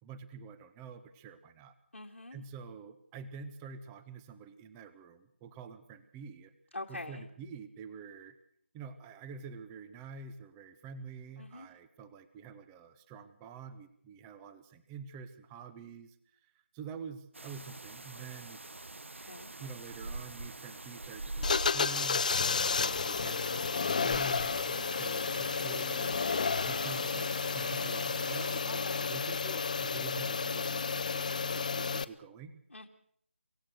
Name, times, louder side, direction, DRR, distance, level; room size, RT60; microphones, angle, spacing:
voice 1, 0.0-1.7 2.3-6.5 6.9-8.4 8.7-18.6 19.6-22.3 22.5-26.1 26.6-32.6, right 5 dB, 10° right, 12 dB, 0.8 m, -47 dB
voice 2, 1.9-2.4 6.7-7.3 11.4-11.7 19.1-19.5 28.7-29.1 32.7-32.9, left 2 dB, 85° left, 1 dB, 2.2 m, -44 dB
sound 1, 17.3-28.6, right 2 dB, 75° right, 1.2 m, -45 dB
sound 2, 21.4-32.0, left 5 dB, 40° left, 0.8 m, -31 dB
25.0 x 16.5 x 6.5 m, 0.66 s
figure-of-eight pair, 165°, 7 cm